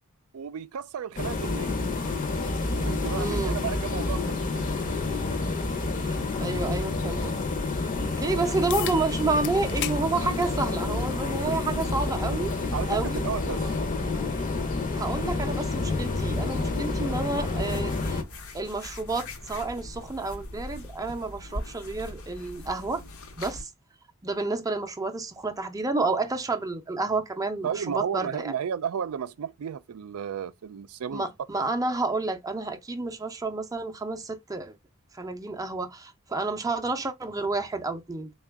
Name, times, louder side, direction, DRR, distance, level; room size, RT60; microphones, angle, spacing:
voice 1, 0.3-1.8 2.8-4.7 12.7-13.8 27.6-31.2, right 7 dB, 70° right, 0.4 m, -33 dB
sound 1, 1.2-18.2, left 3 dB, 35° left, 0.7 m, -29 dB
voice 2, 3.2-3.6 6.0-7.3 8.2-13.3 13.6-13.7 14.9-18.2 18.5-23.0 23.4-23.7 24.2-28.5 31.1-34.7 35.1-38.3, right 3 dB, 15° right, 0.5 m, -30 dB
sound 2, 8.7-9.0 9.4-10.0 10.4-10.6 11.6-11.7 16.6-16.7, left 13 dB, 55° left, 0.3 m, -33 dB
sound 3, 15.7-23.6, left 1 dB, 75° left, 0.9 m, -41 dB
3.7 x 2.3 x 3.4 m
head